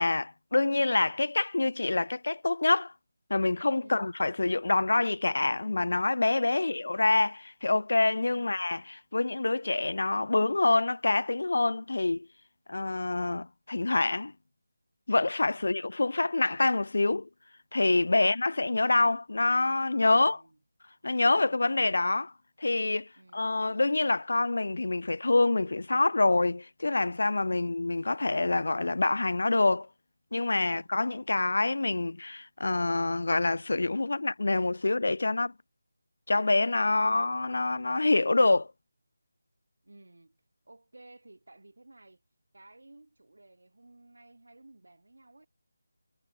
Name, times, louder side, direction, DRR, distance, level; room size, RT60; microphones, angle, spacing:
voice 1, 0.0-2.9 3.3-12.3 12.7-14.3 15.1-17.3 17.7-20.4 21.0-22.3 22.6-29.9 30.3-35.5 36.3-38.7, left 2 dB, 60° left, 0.3 m, -26 dB
voice 2, 3.8-4.2 6.3-6.8 8.3-8.6 15.5-15.9 20.1-20.6 21.3-21.7 23.2-23.5 27.5-27.8 30.6-30.9 36.9-37.3 39.8-40.4 40.7-42.2 42.5-45.5, right 2 dB, 70° right, 2.1 m, -56 dB
figure-of-eight pair, 160°, 0 cm